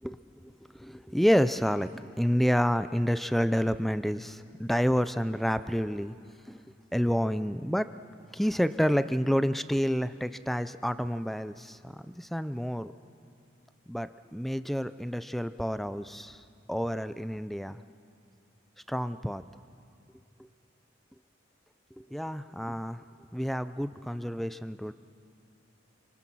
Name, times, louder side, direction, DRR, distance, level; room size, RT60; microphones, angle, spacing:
voice 1, 0.0-6.1 6.5-6.6 6.9-7.9 8.3-12.9 13.9-17.8 18.9-19.4 22.0-23.0 23.3-24.9, equal, ahead, 12 dB, 0.5 m, -29 dB
28.5 x 25.5 x 6.2 m, 2.5 s
head